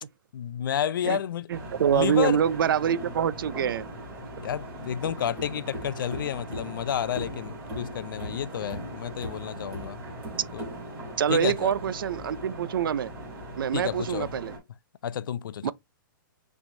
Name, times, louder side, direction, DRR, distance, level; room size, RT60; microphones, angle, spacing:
voice 1, 0.3-1.5 1.9-2.4 4.4-10.0 10.5-10.6 11.3-11.7 13.7-14.3 15.0-15.7, left 9 dB, 70° left, 0.4 m, -30 dB
sound 1, 1.5-14.6, right 1 dB, 15° right, 3.1 m, -39 dB
voice 2, 1.5-3.9 11.2-13.1 13.6-14.5 15.6-15.7, right 8 dB, 80° right, 0.4 m, -25 dB
5.9 x 3.3 x 2.7 m
hypercardioid pair, 165°, 11 cm